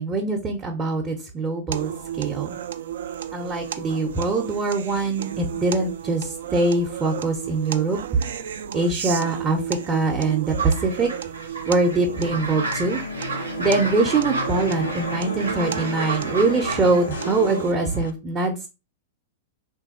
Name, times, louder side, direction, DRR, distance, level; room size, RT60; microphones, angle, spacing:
voice 1, 0.0-2.6 3.3-8.0 8.7-11.1 11.7-13.0 13.6-18.7, right 3 dB, 20° right, 1 dB, 0.6 m, -23 dB
sound 1, 1.7-17.7, right 9 dB, 60° right, 0.3 m, -33 dB
sound 2, 10.6-17.0, right 4 dB, 80° right, 0.7 m, -32 dB
sound 3, 11.7-18.1, left 4 dB, 65° left, 0.3 m, -34 dB
3.3 x 2.6 x 2.5 m, 0.28 s
figure-of-eight pair, 100°, 0 cm